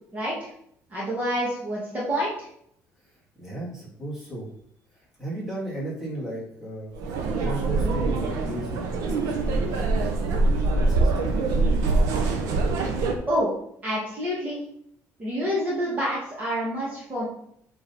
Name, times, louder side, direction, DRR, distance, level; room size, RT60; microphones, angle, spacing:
voice 1, 0.1-0.5 0.9-2.5 13.3-13.5 13.8-14.6 15.2-17.2, equal, 25° right, -6 dB, 2.0 m, -27 dB
voice 2, 3.4-4.5 4.9-6.9 7.4-10.4 10.7-11.6, right 1 dB, 5° right, -7 dB, 3.0 m, -35 dB
sound 1, 6.9-13.1, right 3 dB, 90° right, 1.2 m, -24 dB
8.4 x 3.9 x 4.3 m, 0.70 s
cardioid pair, 150°, 6 cm